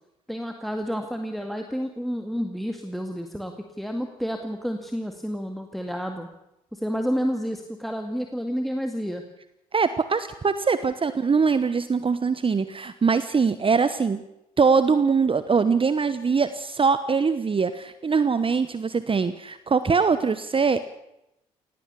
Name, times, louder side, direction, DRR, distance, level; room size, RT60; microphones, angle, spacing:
voice 1, 0.3-6.3 6.7-9.2, equal, ahead, 4 dB, 2.1 m, -30 dB
voice 2, 9.7-14.2 14.6-20.9, right 5 dB, 30° right, 13 dB, 1.1 m, -22 dB
18.5 x 17.5 x 8.4 m, 0.88 s
hypercardioid pair, 50°, 18 cm